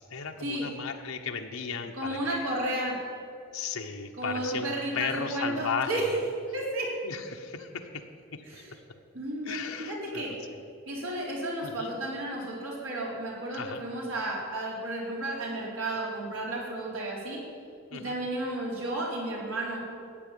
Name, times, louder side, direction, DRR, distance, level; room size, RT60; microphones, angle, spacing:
voice 1, 0.1-2.5 3.5-6.2 7.0-8.0 8.3-8.8 9.4-10.3 11.6-11.9 13.5-13.8 17.9-18.2, left 5 dB, 85° left, 3 dB, 1.0 m, -36 dB
voice 2, 1.9-3.0 4.2-6.0 6.5-6.9 8.5-8.7 9.1-10.3 10.9-17.4 17.9-19.8, right 1 dB, 80° right, -3 dB, 4.1 m, -33 dB
13.5 x 9.1 x 9.1 m, 2.3 s
head